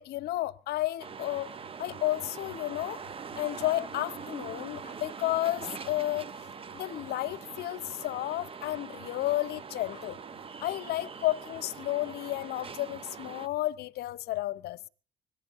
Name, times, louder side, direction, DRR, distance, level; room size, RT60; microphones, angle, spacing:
voice 1, 0.0-1.5 1.8-3.0 3.4-6.2 6.7-10.2 10.6-14.9, left 16 dB, 70° left, 0.8 m, -32 dB
sound 1, 1.0-13.5, right 6 dB, 35° right, 0.9 m, -43 dB
25.0 x 18.0 x 2.7 m
cardioid pair, 110°, 17 cm